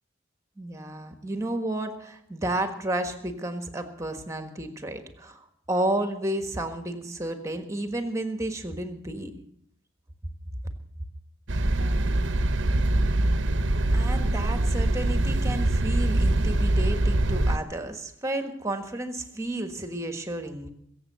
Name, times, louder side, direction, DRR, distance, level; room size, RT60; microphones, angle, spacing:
voice 1, 0.6-9.3 13.9-20.7, right 1 dB, 15° right, 7 dB, 1.4 m, -32 dB
sound 1, 11.5-17.6, right 1 dB, 70° right, 0.9 m, -23 dB
22.5 x 7.7 x 6.8 m, 0.73 s
head